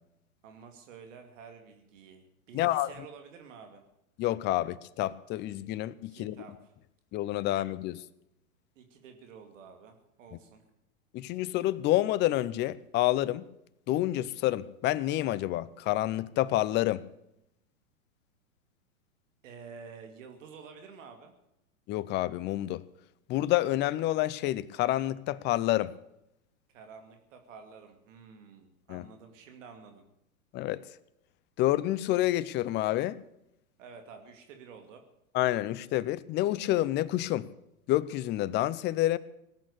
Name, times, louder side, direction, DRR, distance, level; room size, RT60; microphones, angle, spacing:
voice 1, 0.4-3.8 6.1-6.7 8.8-10.6 19.4-21.3 26.7-30.0 33.8-35.0, right 5 dB, 60° right, 2.7 m, -50 dB
voice 2, 2.5-2.9 4.2-6.3 7.1-8.0 11.1-13.5 13.9-17.0 21.9-22.8 23.3-25.9 28.9-29.1 30.5-30.8 31.6-33.2 35.3-37.5 37.9-39.2, left 15 dB, 25° left, 0.6 m, -28 dB
18.5 x 8.7 x 8.3 m
hypercardioid pair, 110°, 42 cm